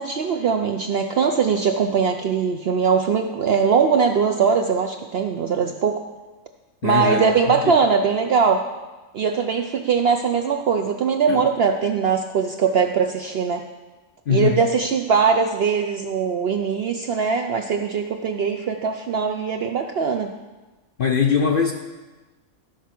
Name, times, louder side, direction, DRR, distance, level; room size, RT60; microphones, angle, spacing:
voice 1, 0.0-6.0 6.8-8.6 9.1-13.6 14.3-20.3, right 6 dB, 65° right, 5 dB, 0.6 m, -21 dB
voice 2, 6.8-7.7 11.3-11.4 14.3-14.6 21.0-21.7, left 6 dB, 55° left, 3 dB, 0.6 m, -21 dB
13.0 x 4.6 x 5.9 m, 1.2 s
omnidirectional pair, 1.5 m